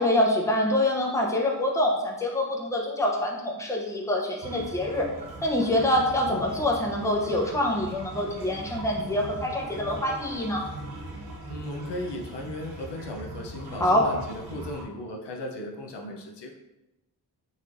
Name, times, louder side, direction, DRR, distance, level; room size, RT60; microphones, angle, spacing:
voice 1, 0.0-5.1 5.4-10.6 13.7-14.1, left 1 dB, 5° left, -1 dB, 0.6 m, -25 dB
sound 1, 4.4-14.8, right 2 dB, 65° right, 0.8 m, -40 dB
voice 2, 11.5-16.5, left 1 dB, 80° left, 1 dB, 0.6 m, -36 dB
3.9 x 3.1 x 2.5 m, 0.96 s
cardioid pair, 65°, 41 cm